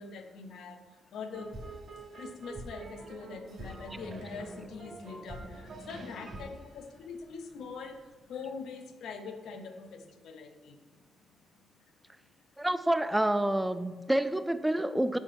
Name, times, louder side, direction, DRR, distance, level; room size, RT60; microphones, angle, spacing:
voice 1, 0.0-1.7 2.1-12.0, left 5 dB, 80° left, 6 dB, 0.7 m, -44 dB
sound 1, 1.3-7.7, right 2 dB, 50° right, 1.8 m, -45 dB
voice 2, 12.6-15.2, right 1 dB, 10° right, 12 dB, 0.3 m, -28 dB
6.4 x 6.3 x 3.4 m, 1.3 s
cardioid pair, 85°, 0 cm